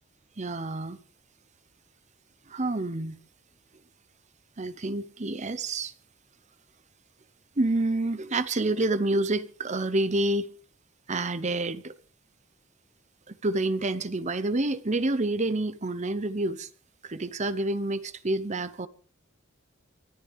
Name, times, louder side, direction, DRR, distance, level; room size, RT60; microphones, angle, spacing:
voice 1, 0.4-1.0 2.5-3.2 4.6-5.9 7.6-10.5 11.1-11.9 13.3-16.7 17.0-18.9, right 2 dB, 35° right, 0.9 m, -28 dB
24.0 x 13.5 x 3.6 m
head